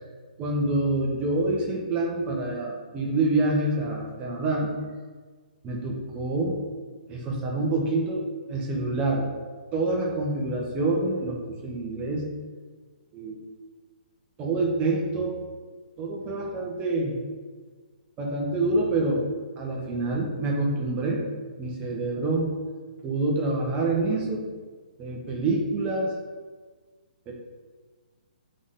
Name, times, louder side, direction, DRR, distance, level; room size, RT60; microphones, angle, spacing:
voice 1, 0.4-4.7 5.6-6.5 7.1-9.3 9.7-12.2 13.1-13.4 14.4-15.4 16.0-17.2 18.2-19.2 19.6-21.2 21.6-22.5 23.0-24.5 25.0-26.1 27.3-27.4, right 2 dB, 20° right, -1 dB, 0.9 m, -26 dB
3.8 x 3.6 x 3.6 m, 1.5 s
hypercardioid pair, 150°, 5 cm